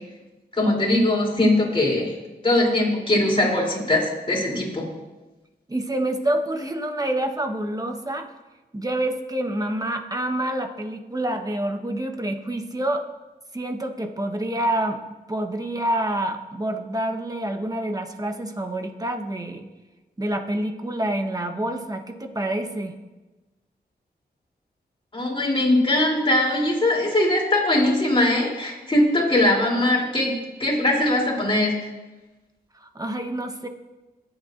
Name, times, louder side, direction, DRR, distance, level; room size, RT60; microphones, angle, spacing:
voice 1, 0.5-2.1 2.4-4.8 25.1-31.7, left 1 dB, 30° left, -2 dB, 3.3 m, -21 dB
voice 2, 5.7-8.3 8.7-13.0 13.5-15.0 15.3-19.7 20.2-22.9 32.7-33.7, right 1 dB, 20° right, 5 dB, 1.1 m, -27 dB
19.0 x 8.3 x 2.6 m, 1.1 s
cardioid pair, 75°, 17 cm